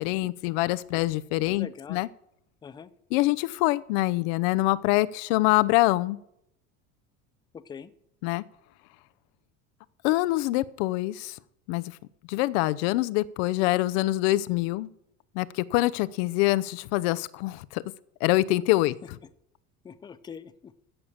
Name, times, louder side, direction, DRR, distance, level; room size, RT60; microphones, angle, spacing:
voice 1, 0.0-2.1 3.1-6.2 8.2-8.4 10.0-11.4 11.7-11.9 12.3-14.9 15.3-17.8 18.2-18.9, left 18 dB, 75° left, 17 dB, 0.7 m, -25 dB
voice 2, 1.5-2.0 2.6-2.9 7.5-7.9 19.8-20.7, left 7 dB, 15° left, 15 dB, 0.4 m, -43 dB
16.0 x 6.7 x 7.3 m, 0.77 s
cardioid pair, 160°, 32 cm